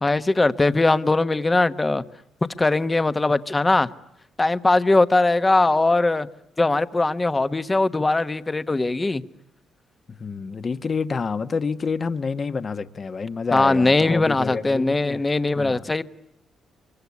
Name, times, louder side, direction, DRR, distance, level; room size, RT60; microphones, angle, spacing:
voice 1, 0.0-2.0 2.6-3.9 4.4-6.3 6.6-9.3 13.5-16.0, left 2 dB, 20° left, 1.2 m, -20 dB
voice 2, 10.2-15.2 15.5-15.9, left 5 dB, 40° left, 1.3 m, -28 dB
25.0 x 23.5 x 9.6 m
cardioid pair, 90°, 0 cm